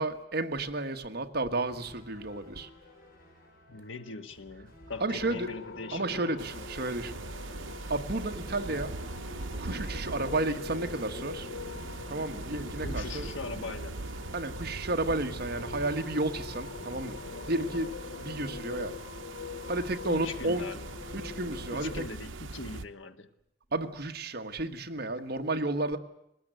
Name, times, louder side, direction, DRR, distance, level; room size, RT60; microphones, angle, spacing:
voice 1, 0.0-2.7 5.0-5.5 5.9-7.2 7.9-8.9 9.6-11.5 12.1-13.2 14.3-17.2 17.5-19.0 19.7-20.7 21.1-22.0 23.7-26.0, right 2 dB, 55° right, 6 dB, 1.5 m, -32 dB
sound 1, 1.7-13.6, left 1 dB, 50° left, 6.2 m, -56 dB
voice 2, 3.7-6.3 12.8-14.0 20.1-20.9 21.7-23.3, left 3 dB, 85° left, 8 dB, 1.5 m, -41 dB
sound 2, 5.1-22.1, left 4 dB, 70° left, 0.9 m, -44 dB
sound 3, 6.4-22.8, right 3 dB, 85° right, 0.9 m, -41 dB
21.0 x 19.0 x 9.2 m, 0.81 s
head